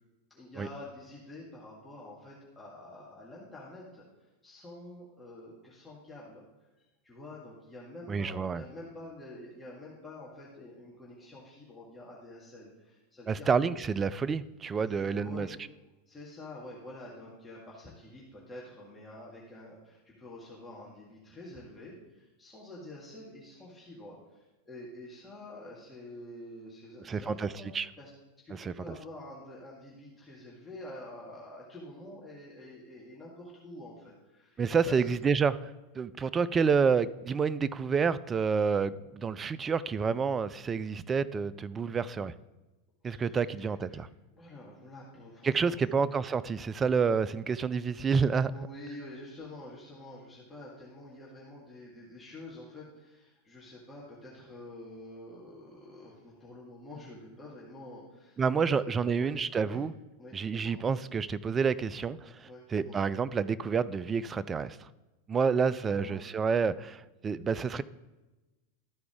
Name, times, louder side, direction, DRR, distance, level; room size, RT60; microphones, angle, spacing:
voice 1, 0.3-4.0 4.4-6.4 6.8-13.8 14.8-15.5 16.1-28.1 28.4-35.1 43.0-44.0 44.3-46.0 48.5-59.8 60.2-60.8 62.4-63.0 65.9-66.3, left 1 dB, 10° left, -6 dB, 1.9 m, -48 dB
voice 2, 8.1-8.6 13.3-15.5 27.0-27.9 28.5-28.9 34.6-35.7 36.0-42.3 43.0-44.1 45.4-48.7 58.4-59.9 60.3-64.9 65.3-67.8, right 5 dB, 20° right, 16 dB, 0.3 m, -29 dB
13.0 x 4.7 x 3.7 m, 1.1 s
figure-of-eight pair, 90°, 0 cm